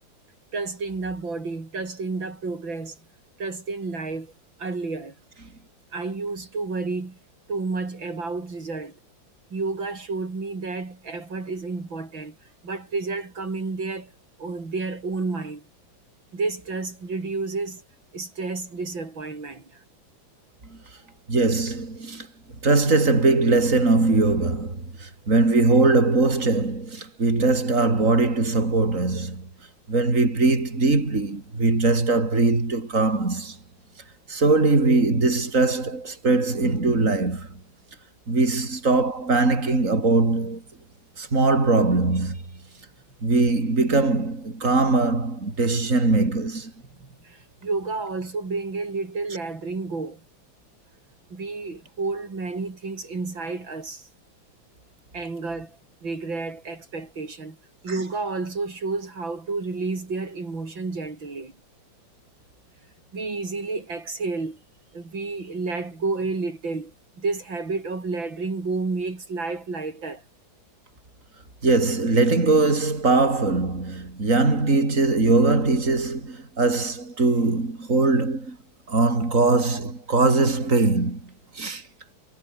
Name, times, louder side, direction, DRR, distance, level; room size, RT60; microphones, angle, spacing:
voice 1, 0.5-3.0 3.4-4.3 4.6-5.2 5.9-7.2 7.5-9.0 9.5-12.4 12.6-14.1 14.4-15.6 16.3-17.8 18.1-19.8 47.0-50.2 51.3-54.1 55.1-57.6 57.8-61.5 63.1-64.6 64.9-70.2, right 3 dB, 80° right, 5.4 m, -30 dB
voice 2, 21.3-22.3 22.6-29.5 29.9-33.6 34.3-37.5 38.3-40.6 41.2-42.4 43.2-46.7 71.6-78.6 78.9-81.8, right 3 dB, 40° right, 4.8 m, -21 dB
omnidirectional pair, 2.1 m